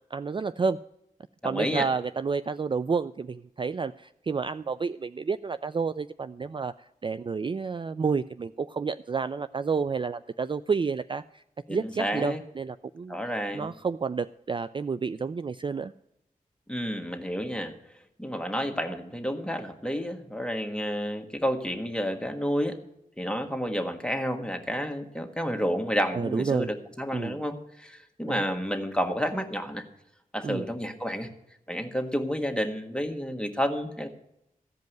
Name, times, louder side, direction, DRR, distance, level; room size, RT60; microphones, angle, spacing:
voice 1, 0.1-0.8 1.4-11.4 11.7-13.2 13.5-15.9 26.1-26.7 27.1-27.4 28.3-28.4 30.4-30.7, right 5 dB, 35° right, 14 dB, 0.3 m, -30 dB
voice 2, 1.4-1.9 11.7-12.4 13.1-13.7 16.7-17.7 18.2-22.8 23.2-29.8 30.3-31.3 31.7-34.1, equal, 5° left, 4 dB, 1.6 m, -30 dB
15.0 x 5.3 x 9.2 m, 0.81 s
cardioid pair, 55°, 15 cm